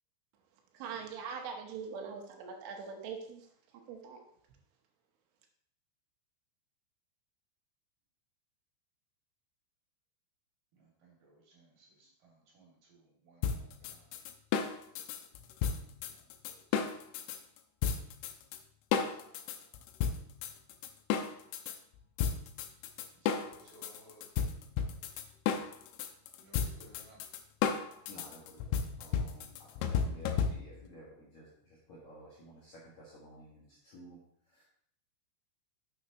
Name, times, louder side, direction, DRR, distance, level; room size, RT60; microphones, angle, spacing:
voice 1, 0.7-3.5 3.9-4.2, right 6 dB, 80° right, 3 dB, 3.5 m, -42 dB
voice 2, 11.0-11.7 12.2-13.0 13.3-14.0 23.3-24.2 26.4-27.2 29.8-30.1, right 1 dB, 50° right, -3 dB, 3.6 m, -59 dB
sound 1, 13.4-17.4 17.8-18.6 18.9-21.8 22.2-30.9, left 7 dB, 85° left, 3.0 m, -33 dB
voice 3, 28.1-34.2 34.5-34.6, right 1 dB, 55° left, -6 dB, 2.1 m, -54 dB
9.5 x 7.9 x 2.9 m, 0.67 s
omnidirectional pair, 5.6 m